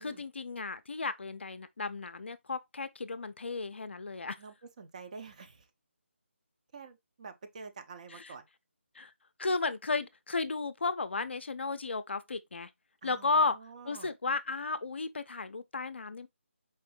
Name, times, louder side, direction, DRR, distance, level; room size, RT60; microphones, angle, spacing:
voice 1, 0.0-4.4 8.1-8.3 9.0-9.1 9.4-12.7 13.0-13.6 13.9-16.3, left 3 dB, 60° left, 0.4 m, -34 dB
voice 2, 4.4-5.7 6.7-8.4 13.0-14.1, right 5 dB, 35° right, 0.6 m, -48 dB
4.4 x 2.6 x 3.1 m
figure-of-eight pair, 155°, 7 cm